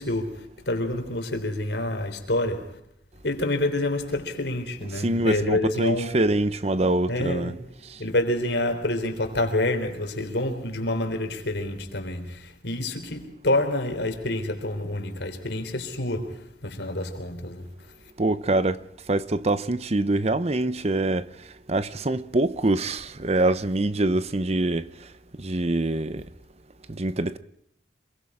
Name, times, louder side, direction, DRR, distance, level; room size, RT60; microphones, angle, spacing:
voice 1, 0.0-2.8 3.2-6.2 6.8-7.7 8.0-17.9, left 1 dB, 70° left, 3.7 m, -28 dB
voice 2, 5.0-7.5 7.9-8.0 18.2-18.8 19.1-21.3 21.7-24.9 25.4-26.3 26.9-27.4, right 2 dB, 35° right, 0.8 m, -24 dB
26.5 x 22.5 x 4.9 m
head